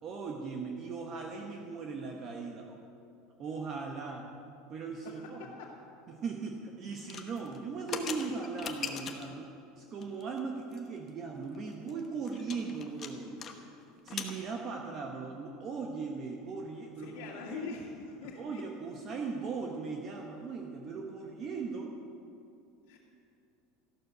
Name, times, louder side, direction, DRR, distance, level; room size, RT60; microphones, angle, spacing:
voice 1, 0.0-2.8 3.4-4.3 4.7-5.4 6.1-13.4 14.0-17.7 18.3-21.9, right 4 dB, 30° right, 1 dB, 1.0 m, -39 dB
voice 2, 5.0-5.7 17.0-18.6 22.9-23.0, left 5 dB, 75° left, -5 dB, 2.2 m, -43 dB
sound 1, 7.0-9.4 10.0-10.4 10.7-10.8 11.1-11.2 11.5-13.6 13.8-14.4, left 7 dB, 25° left, 1.0 m, -40 dB
14.0 x 12.0 x 6.7 m, 2.6 s
supercardioid pair, 175°, 0 cm